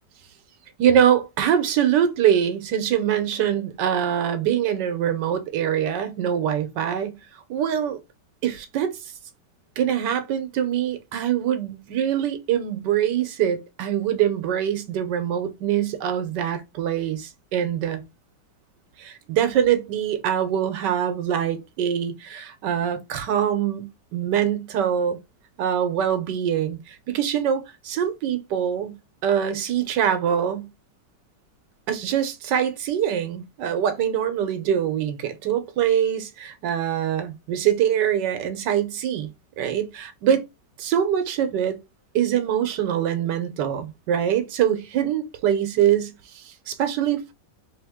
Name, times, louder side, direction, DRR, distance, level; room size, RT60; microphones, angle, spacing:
voice 1, 0.8-7.2 7.5-8.0 8.4-8.9 9.8-18.0 19.0-25.2 25.6-29.0 29.2-30.7 31.9-39.3 39.6-40.4 40.8-41.8 42.1-47.3, right 9 dB, 85° right, 1.4 m, -24 dB
3.5 x 3.4 x 3.5 m
omnidirectional pair, 1.9 m